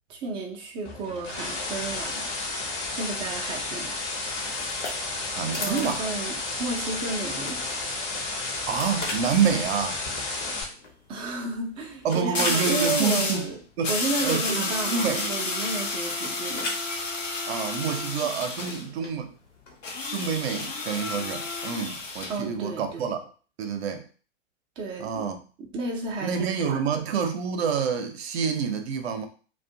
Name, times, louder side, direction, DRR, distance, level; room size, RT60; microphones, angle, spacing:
voice 1, 0.1-3.9 4.6-4.8 5.6-7.6 10.4-10.5 11.1-13.6 13.9-16.7 22.3-23.1 24.8-25.3 25.6-26.8, right 3 dB, 15° right, 0 dB, 0.3 m, -33 dB
sound 1, 0.8-10.6, left 3 dB, 30° left, 0.6 m, -32 dB
sound 2, 4.3-20.8, left 2 dB, 70° left, 0.9 m, -42 dB
voice 2, 5.2-6.1 8.7-10.0 12.0-13.5 13.8-13.9 14.2-15.3 17.5-19.3 20.1-23.2 23.6-24.0 25.0-25.4 26.2-29.3, right 6 dB, 60° right, 7 dB, 0.6 m, -27 dB
sound 3, 9.4-9.5 12.3-13.5 13.8-18.8 19.8-22.4, left 3 dB, 90° left, 0.6 m, -30 dB
2.4 x 2.2 x 2.6 m, 0.39 s
figure-of-eight pair, 95°, 37 cm